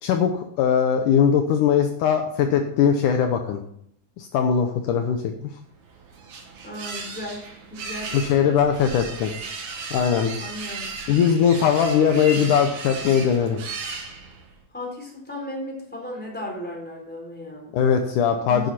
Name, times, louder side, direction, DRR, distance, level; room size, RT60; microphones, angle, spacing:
voice 1, 0.0-3.6 4.2-5.5 8.1-9.3 9.9-10.4 11.1-13.6 17.7-18.7, left 7 dB, 75° left, 5 dB, 2.2 m, -20 dB
sound 1, 5.7-14.6, right 4 dB, 60° right, 2.8 m, -36 dB
voice 2, 6.6-7.4 7.7-8.2 10.4-10.9 14.7-17.7 18.5-18.7, left 1 dB, 5° left, -1 dB, 3.6 m, -35 dB
11.0 x 9.4 x 4.3 m, 0.69 s
omnidirectional pair, 4.0 m